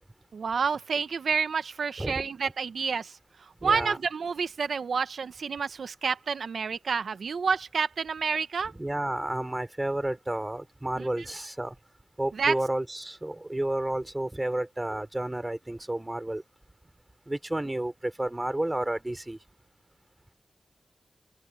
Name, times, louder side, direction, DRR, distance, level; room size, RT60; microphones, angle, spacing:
voice 1, 0.3-8.7 11.0-11.1 12.4-12.5, right 5 dB, 75° right, 0.7 m, -29 dB
voice 2, 3.6-4.0 8.7-11.7 12.2-16.4 17.3-19.4, right 1 dB, 15° right, 3.4 m, -31 dB
open air
wide cardioid pair, 115°, 0 cm